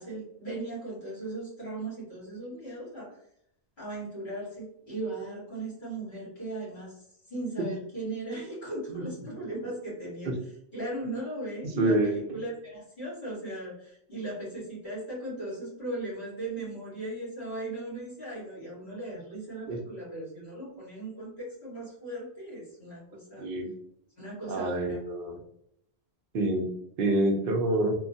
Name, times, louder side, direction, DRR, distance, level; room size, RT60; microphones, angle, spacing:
voice 1, 0.0-3.2 3.8-23.5 24.2-25.0, right 2 dB, 50° left, -7 dB, 1.6 m, -38 dB
voice 2, 11.8-12.2 19.7-19.8 23.4-23.7 24.5-25.4 26.3-26.7 27.0-27.9, right 1 dB, 65° right, 3 dB, 0.7 m, -26 dB
3.0 x 2.1 x 2.6 m, 0.72 s
omnidirectional pair, 1.1 m